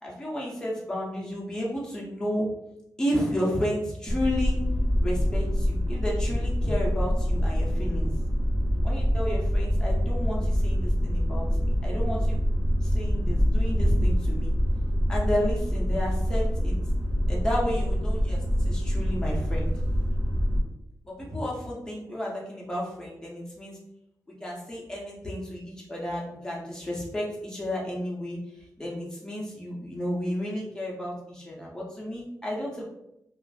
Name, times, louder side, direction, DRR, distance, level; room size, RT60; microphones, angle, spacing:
voice 1, 0.0-2.5 3.0-4.6 5.0-8.1 8.8-12.4 12.8-14.5 15.1-16.8 17.3-19.7 21.0-23.8 24.4-28.4 28.8-32.8, equal, 10° left, -4 dB, 0.7 m, -32 dB
sound 1, 4.1-20.6, equal, 25° right, 1.1 m, -25 dB
2.4 x 2.1 x 3.4 m, 0.81 s
wide cardioid pair, 170°, 7 cm